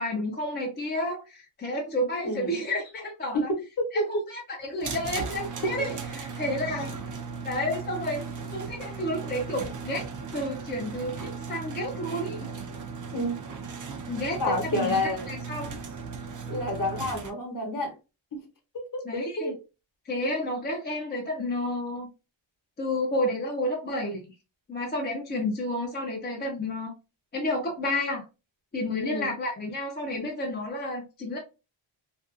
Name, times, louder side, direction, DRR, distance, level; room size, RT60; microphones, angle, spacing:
voice 1, 0.0-3.5 3.9-7.0 7.4-10.1 10.3-12.5 14.1-15.0 15.3-15.8 19.0-19.6 20.1-22.1 22.8-24.2 24.7-26.9 27.3-28.2 28.7-31.4, left 1 dB, 20° left, 0.4 m, -31 dB
voice 2, 2.2-2.6 3.3-3.4 3.8-4.0 5.6-5.7 13.1-13.4 14.4-15.3 16.5-17.9 18.3-18.4 18.7-19.6 29.0-29.3, left 1 dB, 40° left, 0.9 m, -29 dB
sound 1, 4.8-17.3, right 5 dB, 40° right, 0.4 m, -37 dB
2.5 x 2.2 x 2.4 m
wide cardioid pair, 140°, 49 cm